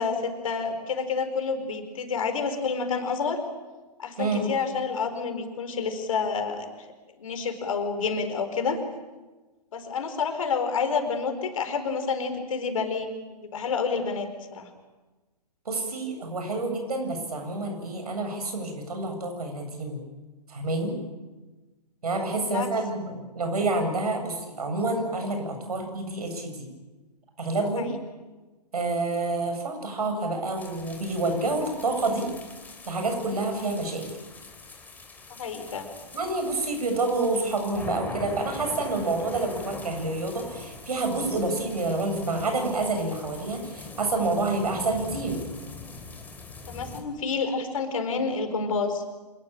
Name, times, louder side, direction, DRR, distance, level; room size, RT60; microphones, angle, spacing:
voice 1, 0.0-3.4 4.0-6.7 7.2-8.8 9.7-14.7 22.4-22.7 27.7-27.9 35.4-35.9 46.7-49.0, left 5 dB, 55° left, 7 dB, 4.5 m, -29 dB
voice 2, 15.6-20.0 20.5-20.9 22.0-26.7 27.4-27.9 28.7-32.3 32.8-34.1 36.1-45.4, right 2 dB, 65° right, 5 dB, 7.8 m, -28 dB
sound 1, 30.6-47.0, left 3 dB, 10° left, 3.2 m, -43 dB
27.5 x 20.0 x 9.0 m, 1.2 s
figure-of-eight pair, 125°, 21 cm